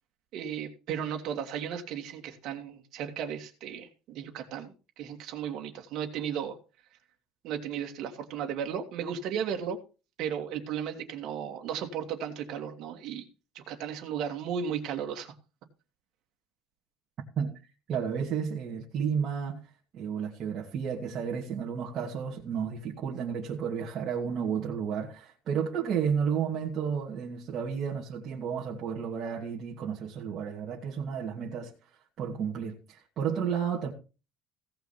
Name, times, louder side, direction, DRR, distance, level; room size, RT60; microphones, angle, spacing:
voice 1, 0.3-6.6 7.4-9.8 10.2-13.2 13.5-15.3, right 8 dB, 55° right, 2.6 m, -35 dB
voice 2, 17.9-19.6 19.9-31.7 32.2-33.9, right 7 dB, 35° right, 2.4 m, -32 dB
16.5 x 5.7 x 5.8 m
cardioid pair, 160°, 0 cm